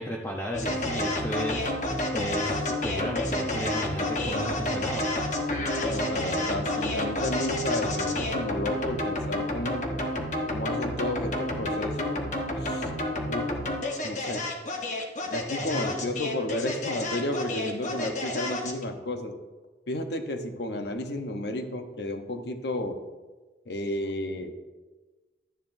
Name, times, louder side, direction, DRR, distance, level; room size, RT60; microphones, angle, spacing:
voice 1, 0.0-5.1 15.7-16.2, equal, 15° left, -2 dB, 0.8 m, -34 dB
sound 1, 0.5-18.8, left 1 dB, 40° left, 1.2 m, -30 dB
voice 2, 5.8-9.9 10.5-12.2 12.6-12.9 13.3-13.5 14.0-14.4 15.3-19.4 19.9-23.0 23.7-24.5, left 1 dB, 65° left, 6 dB, 0.9 m, -32 dB
12.5 x 10.0 x 2.7 m, 1.3 s
head